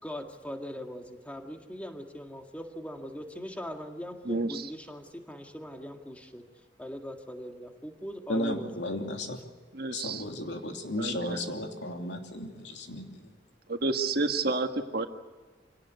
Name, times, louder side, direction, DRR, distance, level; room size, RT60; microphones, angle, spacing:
voice 1, 0.0-6.4 6.8-9.4, equal, 10° left, 4 dB, 1.9 m, -41 dB
voice 2, 4.2-4.7 9.7-10.2 11.0-11.4 13.7-15.1, right 3 dB, 55° right, 5 dB, 1.7 m, -30 dB
voice 3, 8.3-9.4 9.9-13.2, left 1 dB, 75° left, 3 dB, 2.9 m, -34 dB
25.5 x 18.0 x 9.6 m, 1.4 s
head